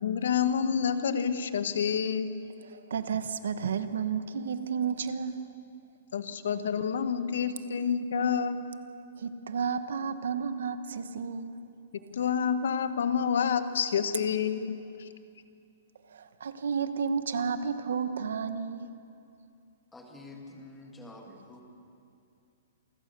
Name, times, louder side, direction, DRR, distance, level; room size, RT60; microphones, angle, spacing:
voice 1, 0.0-2.3 6.1-8.6 12.1-15.1, left 7 dB, 65° left, 11 dB, 1.1 m, -28 dB
voice 2, 2.6-5.4 9.2-11.6 16.1-18.9, right 6 dB, 70° right, 11 dB, 1.2 m, -32 dB
voice 3, 19.9-21.6, left 2 dB, 5° left, 1 dB, 1.8 m, -47 dB
27.5 x 14.5 x 6.8 m, 2.5 s
hypercardioid pair, 180°, 0 cm